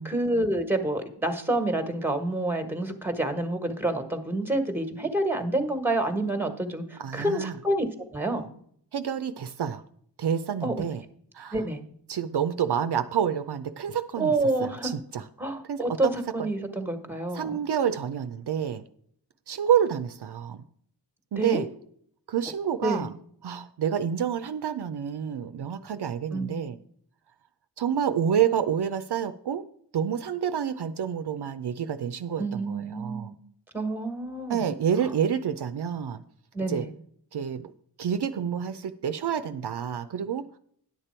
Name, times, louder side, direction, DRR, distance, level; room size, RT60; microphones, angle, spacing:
voice 1, 0.0-8.5 10.6-10.7 11.5-11.8 14.2-14.9 15.4-17.5 21.4-21.6 22.8-23.1 26.3-26.6 32.4-33.4 33.7-34.7 35.0-35.1 36.5-36.9, right 2 dB, 5° right, 7 dB, 1.3 m, -28 dB
voice 2, 7.0-7.5 8.9-9.8 10.2-11.0 11.3-11.6 12.1-15.2 15.7-16.1 16.4-16.5 17.3-18.8 19.5-20.6 21.3-21.7 22.3-23.1 23.4-26.8 27.8-29.6 29.9-33.3 34.5-36.2 36.7-36.9 37.3-37.7 38.0-40.5, right 8 dB, 70° right, 10 dB, 0.5 m, -28 dB
10.5 x 6.7 x 4.4 m, 0.65 s
wide cardioid pair, 55°, 41 cm